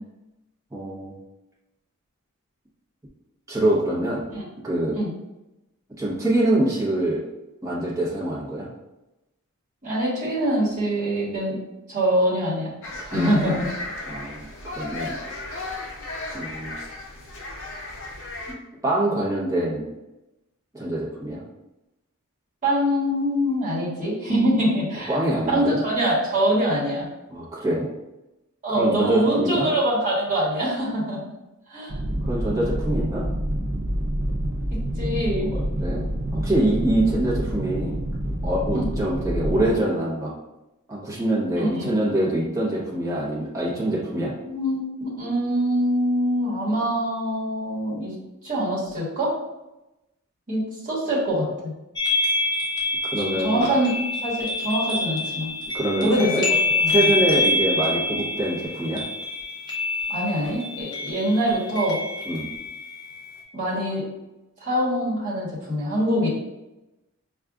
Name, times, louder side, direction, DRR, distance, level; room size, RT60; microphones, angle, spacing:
voice 1, 0.7-1.1 3.5-4.2 4.6-5.0 6.0-7.2 7.6-8.7 13.1-13.6 14.1-14.5 14.8-15.1 16.3-16.7 18.5-18.6 18.8-19.8 20.7-21.4 25.1-25.8 27.3-27.9 28.7-29.7 32.3-33.2 35.5-36.0 36.3-38.0 38.4-40.3 40.9-44.3 53.1-53.7 55.7-56.4 56.9-59.0 62.3-62.5, right 1 dB, 15° right, -6 dB, 0.8 m, -24 dB
voice 2, 9.8-12.8 13.1-13.7 22.6-25.2 25.5-27.1 28.6-31.2 31.7-32.0 34.7-35.5 38.7-38.9 41.6-41.9 44.4-48.2 48.4-49.3 50.5-51.7 53.1-53.9 54.2-55.5 56.0-56.4 56.8-57.1 60.1-62.0 63.5-64.0 64.6-66.3, equal, 35° right, -7 dB, 1.2 m, -24 dB
sound 1, 12.8-18.5, left 2 dB, 65° left, 0.6 m, -35 dB
sound 2, 31.9-39.7, right 1 dB, 60° right, 0.6 m, -27 dB
sound 3, 52.0-63.4, left 2 dB, 20° left, 0.6 m, -26 dB
4.9 x 2.3 x 2.4 m, 0.97 s
head